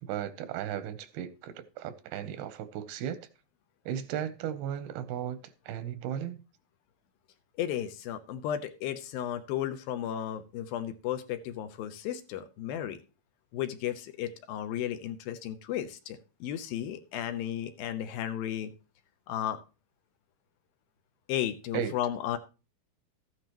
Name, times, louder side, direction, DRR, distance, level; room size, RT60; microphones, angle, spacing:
voice 1, 0.0-3.2 3.9-5.4 5.7-6.4 21.7-21.9, right 9 dB, 90° right, 2.8 m, -35 dB
voice 2, 7.6-13.0 13.5-18.7 19.3-19.6 21.3-22.4, left 11 dB, 80° left, 2.6 m, -34 dB
13.5 x 9.5 x 3.0 m
omnidirectional pair, 4.3 m